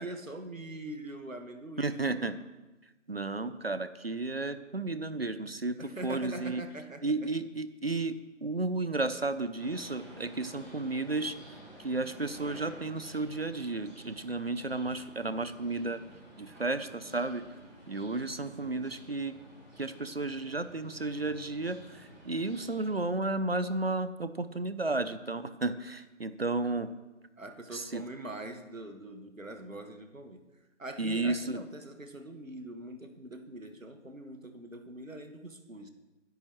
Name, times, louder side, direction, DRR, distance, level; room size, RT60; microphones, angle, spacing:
voice 1, 0.0-2.2 5.8-7.3 18.6-18.9 27.4-30.4 30.8-35.9, right 1 dB, 85° right, 6 dB, 1.8 m, -43 dB
voice 2, 1.8-2.4 3.1-6.6 7.0-11.4 11.8-16.0 16.4-17.4 17.9-19.4 19.8-26.9 27.7-28.0 31.0-31.6, right 2 dB, 50° right, 12 dB, 0.7 m, -33 dB
sound 1, 9.6-23.0, right 1 dB, ahead, 4.9 m, -52 dB
21.0 x 10.5 x 3.1 m, 1.1 s
figure-of-eight pair, 165°, 39 cm